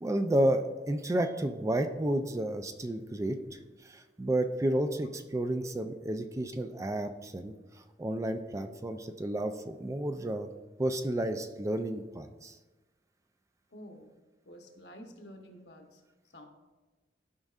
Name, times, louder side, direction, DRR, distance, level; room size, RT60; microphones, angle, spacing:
voice 1, 0.0-10.5 10.8-12.6, right 1 dB, 20° right, 8 dB, 0.3 m, -31 dB
voice 2, 13.7-14.1 14.4-16.0 16.3-16.5, equal, 70° left, 3 dB, 1.1 m, -49 dB
12.5 x 5.2 x 2.4 m, 1.2 s
head